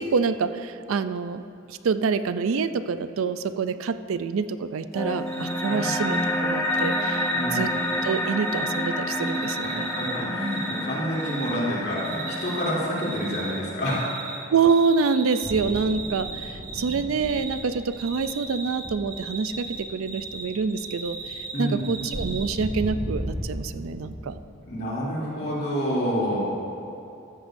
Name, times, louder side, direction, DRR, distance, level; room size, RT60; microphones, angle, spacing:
voice 1, 0.0-1.4 1.7-7.7 8.0-9.9 14.5-24.4, right 5 dB, 80° right, 11 dB, 0.4 m, -26 dB
sound 1, 4.9-13.9, left 1 dB, 15° left, 0.6 m, -29 dB
Cricket, 5.3-5.7 5.9-6.3 6.6-8.8 9.1-10.8 11.1-11.5 11.9-12.7 13.0-14.4 14.6-16.9 17.2-17.6 17.9-20.4 20.7-22.5, right 5 dB, 45° right, 2.4 m, -37 dB
voice 2, 7.3-7.7 9.6-14.1 21.5-21.9 24.6-26.6, equal, 50° left, -6 dB, 2.9 m, -28 dB
sound 2, 15.4-24.5, equal, 30° right, 1.5 m, -37 dB
14.0 x 13.5 x 2.6 m, 2.6 s
head